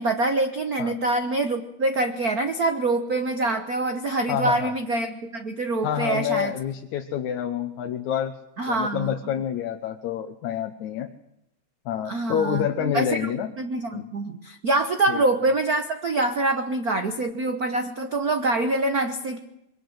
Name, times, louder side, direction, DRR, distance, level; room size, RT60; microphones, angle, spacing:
voice 1, 0.0-6.5 8.6-9.1 12.1-13.3 13.6-19.4, right 2 dB, 55° right, 7 dB, 1.0 m, -25 dB
voice 2, 4.3-4.7 5.8-8.3 8.7-11.1 11.9-13.5 13.9-14.1 15.1-15.2, left 10 dB, 80° left, 5 dB, 2.5 m, -28 dB
23.0 x 18.5 x 8.0 m, 0.83 s
omnidirectional pair, 3.3 m